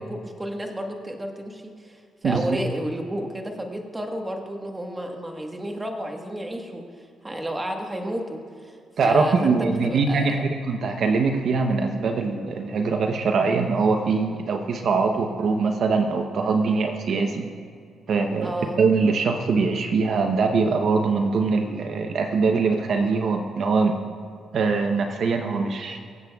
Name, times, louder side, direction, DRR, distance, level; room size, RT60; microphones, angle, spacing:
voice 1, 0.0-10.4 18.4-18.8, right 1 dB, 15° right, 2 dB, 1.4 m, -32 dB
voice 2, 2.2-2.6 9.0-17.5 18.1-24.0 24.5-26.0, right 4 dB, 60° right, 4 dB, 0.8 m, -22 dB
23.5 x 7.8 x 2.4 m, 2.3 s
cardioid pair, 90°, 0 cm